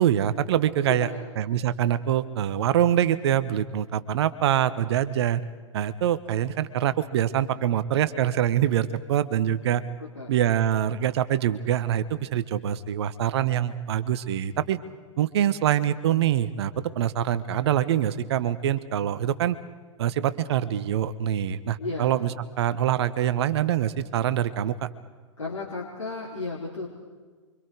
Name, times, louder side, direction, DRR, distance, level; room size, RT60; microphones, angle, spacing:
voice 1, 0.0-1.1 1.4-5.4 5.7-9.8 10.3-14.8 15.2-19.6 20.0-24.9, right 10 dB, 55° right, 14 dB, 1.2 m, -24 dB
voice 2, 0.9-1.3 10.0-10.3 21.8-22.1 25.4-26.9, left 3 dB, 75° left, -3 dB, 3.8 m, -34 dB
29.0 x 25.0 x 4.7 m, 1.4 s
figure-of-eight pair, 105°, 17 cm